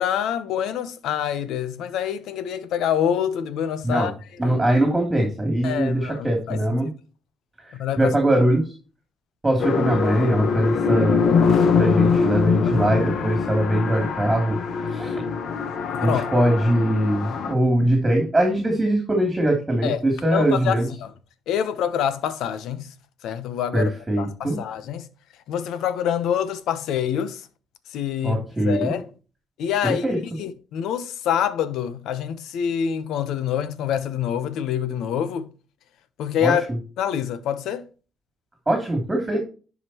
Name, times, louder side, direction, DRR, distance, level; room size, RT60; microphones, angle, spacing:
voice 1, 0.0-4.1 4.4-4.6 5.6-6.8 7.8-8.2 12.7-13.0 16.0-16.3 19.8-20.0 20.3-21.1 21.5-22.9 23.2-23.9 24.2-25.1 25.5-27.5 27.9-29.1 29.6-35.5 36.2-36.6 37.0-37.9, left 9 dB, 85° left, 0.9 m, -26 dB
voice 2, 4.4-6.9 8.0-8.6 9.4-11.3 11.7-14.6 14.9-15.2 16.0-20.9 23.7-24.6 28.2-29.0 29.8-30.2 36.4-36.5 38.7-39.4, right 1 dB, 15° right, 2.9 m, -21 dB
sound 1, 9.6-17.5, left 5 dB, 65° left, 1.1 m, -23 dB
10.5 x 5.2 x 3.0 m
cardioid pair, 90°, 0 cm